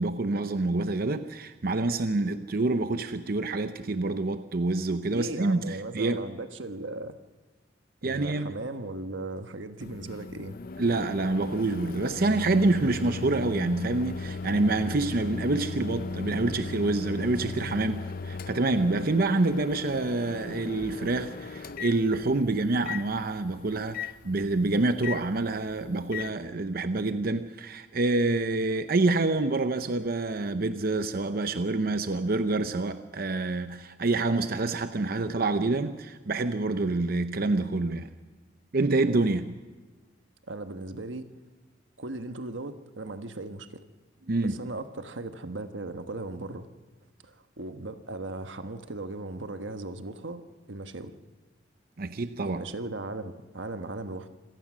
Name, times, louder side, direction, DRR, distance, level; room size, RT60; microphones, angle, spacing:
voice 1, 0.0-6.3 8.0-8.5 10.8-38.1 38.7-39.6 44.3-44.6 52.0-52.6, right 2 dB, 55° right, 10 dB, 0.7 m, -27 dB
voice 2, 5.1-7.2 8.0-10.6 40.5-41.3 42.0-43.8 44.4-46.7 47.2-51.1 52.4-54.3, right 2 dB, 85° right, 8 dB, 1.3 m, -37 dB
Microwave oven, 9.8-26.3, left 4 dB, 50° left, 0.7 m, -38 dB
26.0 x 17.5 x 6.2 m, 1.3 s
head